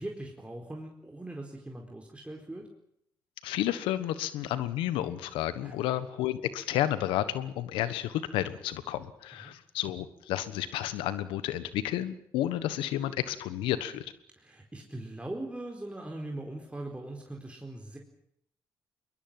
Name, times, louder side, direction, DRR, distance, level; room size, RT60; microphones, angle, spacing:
voice 1, 0.0-2.7 5.6-6.0 9.4-9.5 14.4-18.0, right 1 dB, 15° right, 1 dB, 4.4 m, -41 dB
voice 2, 3.4-14.0, left 13 dB, 90° left, 14 dB, 1.3 m, -31 dB
22.5 x 20.5 x 7.7 m, 0.72 s
supercardioid pair, 55°, 9 cm